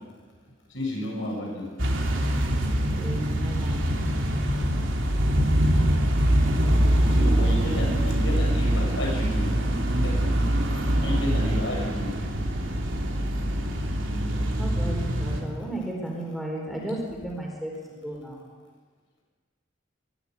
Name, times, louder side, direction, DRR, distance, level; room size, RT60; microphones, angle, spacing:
voice 1, 0.7-1.7 7.1-9.5 10.0-10.2 11.0-12.1, left 1 dB, 80° left, -2 dB, 7.9 m, -31 dB
sound 1, 1.8-15.4, right 1 dB, 80° right, 3.1 m, -24 dB
voice 2, 2.9-3.8 14.6-17.7 18.0-18.4, right 1 dB, ahead, -2 dB, 4.5 m, -34 dB
22.5 x 12.0 x 9.7 m, 1.5 s
head